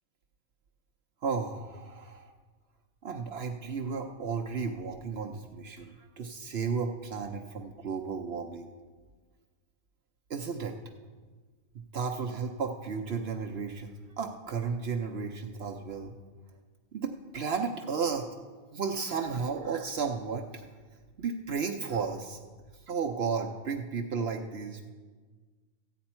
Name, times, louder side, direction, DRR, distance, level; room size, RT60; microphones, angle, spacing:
voice 1, 1.2-2.3 3.0-8.7 10.3-10.8 11.7-16.1 16.9-18.3 18.7-20.7 21.2-22.4 22.9-24.9, right 5 dB, 55° right, 3 dB, 0.8 m, -33 dB
14.0 x 9.4 x 4.3 m, 1.4 s
omnidirectional pair, 1.5 m